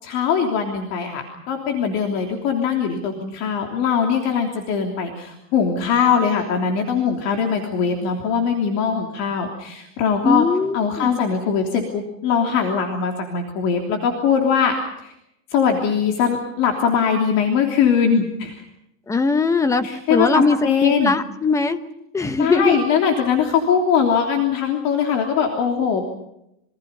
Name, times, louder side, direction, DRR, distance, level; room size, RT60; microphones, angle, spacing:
voice 1, 0.0-10.4 10.7-14.7 15.0-15.1 15.5-18.5 19.8-21.1 22.4-26.1, left 7 dB, 40° left, 3 dB, 3.2 m, -21 dB
voice 2, 10.2-11.2 19.1-20.6 20.8-21.8 22.1-22.8, left 3 dB, 10° left, 12 dB, 0.9 m, -20 dB
27.5 x 24.5 x 5.4 m, 0.82 s
supercardioid pair, 165°, 40 cm